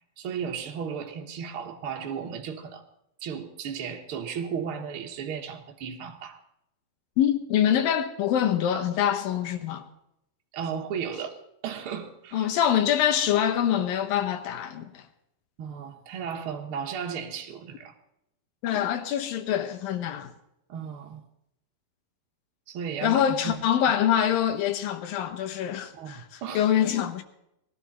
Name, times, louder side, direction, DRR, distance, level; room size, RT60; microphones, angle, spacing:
voice 1, 0.2-2.8 3.2-6.4 10.5-11.4 11.6-12.5 15.6-17.9 20.7-21.2 22.7-23.5 26.0-26.6, right 7 dB, 55° right, 1.7 m, -35 dB
voice 2, 7.2-9.9 12.3-15.1 18.6-20.3 23.0-27.2, left 10 dB, 80° left, 2.9 m, -25 dB
20.0 x 12.5 x 4.2 m
omnidirectional pair, 4.1 m